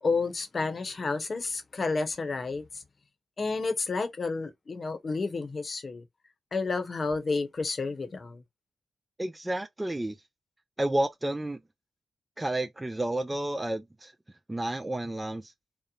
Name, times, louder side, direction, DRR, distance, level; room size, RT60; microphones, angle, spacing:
voice 1, 0.0-2.8 3.4-6.0 6.5-8.4, left 3 dB, 50° left, 0.8 m, -30 dB
voice 2, 9.2-10.2 10.8-11.6 12.4-14.1 14.5-15.5, right 1 dB, 20° right, 0.4 m, -31 dB
3.0 x 2.0 x 2.3 m
supercardioid pair, 45°, 0 cm